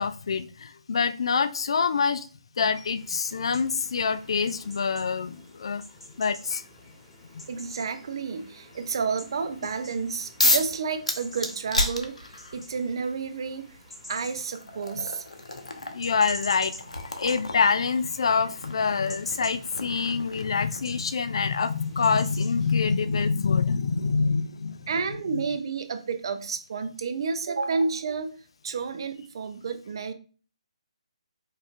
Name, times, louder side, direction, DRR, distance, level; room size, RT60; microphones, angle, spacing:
voice 1, 0.0-2.3 2.6-5.8 6.2-6.6 7.3-7.5 15.9-16.7 17.2-24.8 25.3-25.4, left 5 dB, 50° left, 12 dB, 0.4 m, -26 dB
sound 1, 3.0-22.7, left 1 dB, ahead, 1.3 m, -47 dB
voice 2, 7.5-12.3 12.5-13.7 14.1-15.2 24.9-28.3 28.6-30.1, right 5 dB, 45° right, 9 dB, 0.6 m, -30 dB
sound 2, 10.4-10.7 11.1-12.6 13.7-13.8 14.3-21.0, left 2 dB, 75° left, 0.8 m, -31 dB
4.7 x 3.2 x 2.5 m, 0.38 s
figure-of-eight pair, 140°, 4 cm